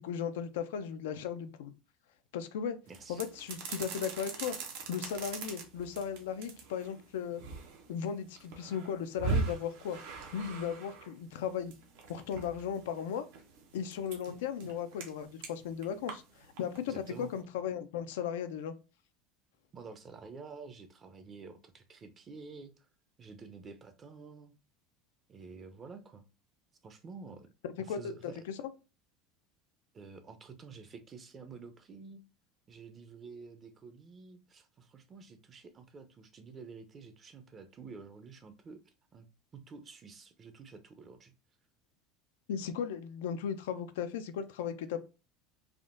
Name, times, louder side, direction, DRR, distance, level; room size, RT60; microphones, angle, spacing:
voice 1, 0.0-1.7 2.3-2.8 3.1-4.6 4.9-7.4 7.9-10.0 10.3-11.7 12.1-13.3 13.7-18.7 27.6-28.3 28.6-28.7 42.5-45.0, left 8 dB, 90° left, 0.4 m, -36 dB
voice 2, 2.9-3.2 16.9-17.3 19.7-22.9 23.2-24.6 25.3-26.2 26.8-27.5 27.8-28.4 29.9-32.2 32.7-39.3 39.5-41.3, right 4 dB, 30° right, 0.5 m, -50 dB
sound 1, 2.9-17.4, right 4 dB, 80° right, 0.7 m, -41 dB
3.5 x 2.2 x 2.4 m
supercardioid pair, 125°, 0 cm